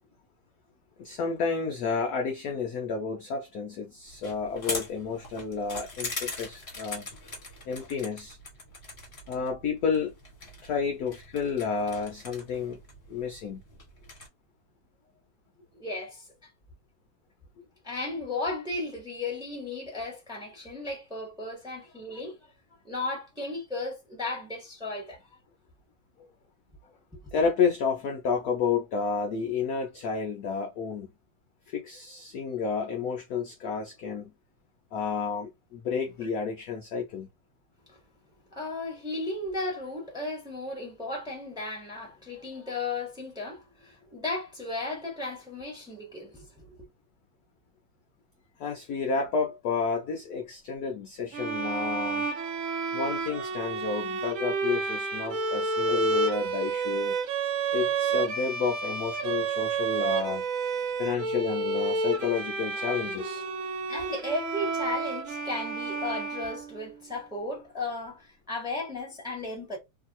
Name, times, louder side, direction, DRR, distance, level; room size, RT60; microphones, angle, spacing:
voice 1, 1.0-7.1 7.6-8.4 9.3-10.1 10.6-12.8 13.1-13.6 26.2-26.3 27.3-31.1 31.7-34.3 34.9-37.3 48.6-52.3 52.9-57.2 57.7-60.4 61.0-63.5, left 5 dB, 65° left, 1.0 m, -31 dB
sound 1, 4.1-14.3, left 2 dB, 30° left, 1.3 m, -41 dB
voice 2, 15.7-16.3 17.8-22.4 22.8-25.2 27.1-27.2 36.2-36.3 38.5-46.8 63.9-69.8, left 2 dB, ahead, 1.1 m, -35 dB
sound 2, 51.3-67.0, right 4 dB, 85° right, 0.7 m, -30 dB
3.1 x 2.8 x 2.5 m
omnidirectional pair, 2.2 m